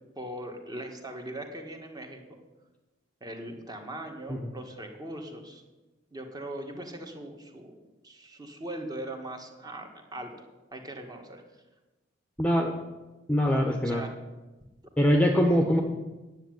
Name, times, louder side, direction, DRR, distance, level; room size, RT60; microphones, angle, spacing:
voice 1, 0.1-2.2 3.2-5.6 6.1-7.7 8.0-11.4 13.8-14.1 15.5-15.8, right 1 dB, 20° right, 4 dB, 1.6 m, -40 dB
voice 2, 12.4-12.8 13.3-14.0 15.0-15.8, equal, 5° left, 3 dB, 0.9 m, -23 dB
10.0 x 7.3 x 9.2 m, 1.1 s
head